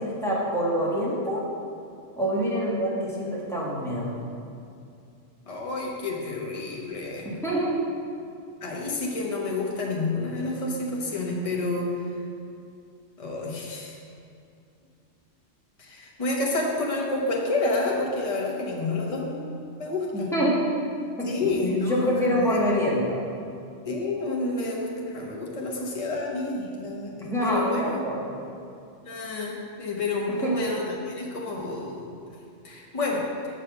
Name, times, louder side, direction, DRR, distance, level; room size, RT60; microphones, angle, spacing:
voice 1, 0.0-1.4 2.2-4.1 7.2-7.8 20.1-20.6 21.2-21.3 21.6-23.2 27.3-28.2 30.4-30.6, equal, ahead, -6 dB, 1.6 m, -26 dB
voice 2, 5.5-7.3 8.6-11.9 13.2-13.9 15.8-20.4 21.2-22.6 23.8-28.1 29.0-32.1 32.6-33.3, left 2 dB, 30° left, -2 dB, 1.1 m, -29 dB
6.4 x 5.0 x 6.7 m, 2.5 s
omnidirectional pair, 1.2 m